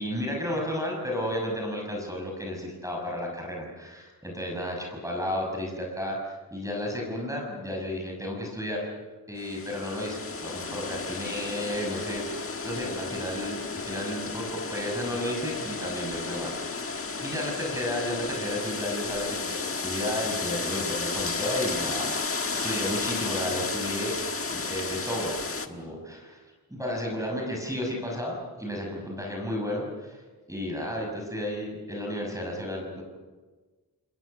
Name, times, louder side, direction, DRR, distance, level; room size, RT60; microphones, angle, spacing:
voice 1, 0.0-8.9 9.3-16.9 17.2-24.1 24.5-26.4 26.7-30.2 30.5-33.0, left 1 dB, 10° right, -1 dB, 6.0 m, -33 dB
sound 1, 9.4-25.7, left 4 dB, 35° left, 1.5 m, -33 dB
29.5 x 21.0 x 6.7 m, 1.3 s
wide cardioid pair, 160°, 39 cm